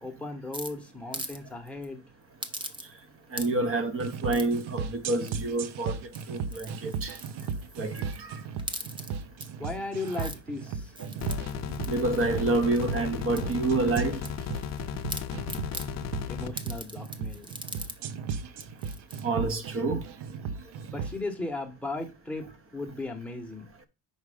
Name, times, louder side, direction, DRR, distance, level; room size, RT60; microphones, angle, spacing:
voice 1, 0.0-2.0 9.6-10.9 16.3-17.5 20.9-23.7, left 2 dB, 5° left, 0.9 m, -36 dB
sound 1, 0.5-1.4 1.7-1.9 2.4-3.0 3.3-3.7 4.3-4.6 5.3-5.7 6.0-8.2 8.6-9.5 9.9-10.4 10.9-13.0 13.4-14.8 15.1-15.9 16.6-18.0 18.3-18.4 18.6-19.2, right 2 dB, 10° right, 0.4 m, -41 dB
voice 2, 3.3-6.0 6.3-7.1 7.8-8.4 11.3-11.4 11.9-14.2 19.2-20.0, right 2 dB, 30° right, 0.8 m, -28 dB
sound 2, 4.0-21.2, right 6 dB, 70° right, 0.7 m, -36 dB
sound 3, 11.2-16.5, left 9 dB, 40° left, 0.5 m, -35 dB
5.5 x 4.8 x 4.8 m
cardioid pair, 170°, 42 cm